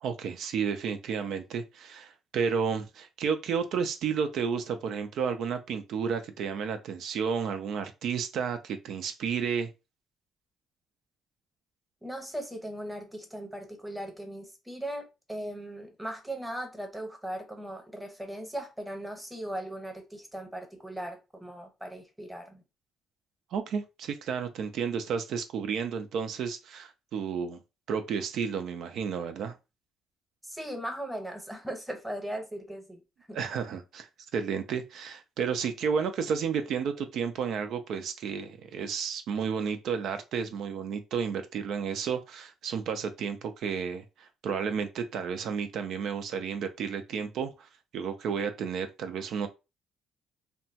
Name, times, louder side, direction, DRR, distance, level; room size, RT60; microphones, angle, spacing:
voice 1, 0.0-9.7 23.5-27.6 27.9-29.5 33.3-34.1 34.3-49.5, right 6 dB, 70° right, 0.5 m, -32 dB
voice 2, 12.0-22.6 30.4-33.0 33.3-33.4, right 1 dB, 5° right, 1.0 m, -38 dB
2.8 x 2.2 x 2.7 m
cardioid pair, 80°, 0 cm